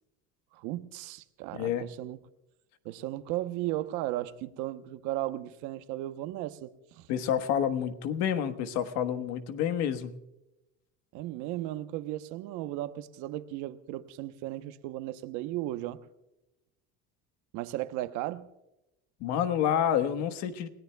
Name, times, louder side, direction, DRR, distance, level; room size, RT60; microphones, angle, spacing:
voice 1, 0.5-2.2 2.8-7.1 11.1-16.0 17.5-18.5, right 15 dB, 70° right, 1.0 m, -35 dB
voice 2, 1.5-1.9 7.1-10.1 19.2-20.7, left 9 dB, 65° left, 1.3 m, -28 dB
30.0 x 17.5 x 2.3 m
cardioid pair, 145°, 30 cm